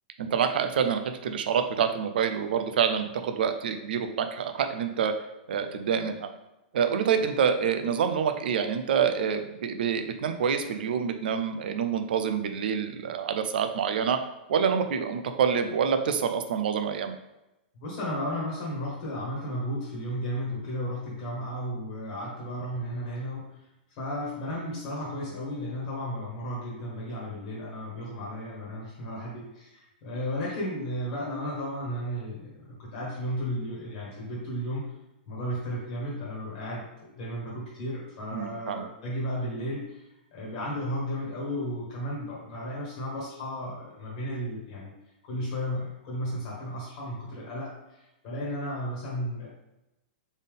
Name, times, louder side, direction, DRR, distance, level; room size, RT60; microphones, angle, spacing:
voice 1, 0.2-5.1 5.5-6.3 6.7-14.2 14.5-17.1 38.3-38.8, right 7 dB, 65° right, 7 dB, 0.5 m, -27 dB
voice 2, 17.7-23.6 23.9-34.9 35.3-40.0 40.3-44.9 45.2-49.5, equal, 30° left, -5 dB, 1.4 m, -34 dB
4.1 x 3.6 x 3.6 m, 0.93 s
supercardioid pair, 175°, 6 cm